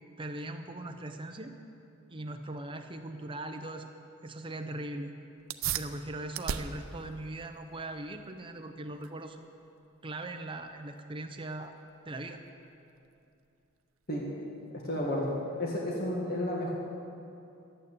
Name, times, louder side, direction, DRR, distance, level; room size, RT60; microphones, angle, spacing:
voice 1, 0.2-1.6 2.1-3.9 4.2-5.1 5.7-9.5 10.0-11.7 12.1-12.4, right 2 dB, 25° right, 6 dB, 0.6 m, -40 dB
sound 1, 5.4-15.4, right 8 dB, 80° right, 0.6 m, -42 dB
voice 2, 14.8-15.3 15.6-16.7, left 1 dB, 50° left, -3 dB, 1.8 m, -31 dB
12.0 x 9.0 x 8.4 m, 2.6 s
head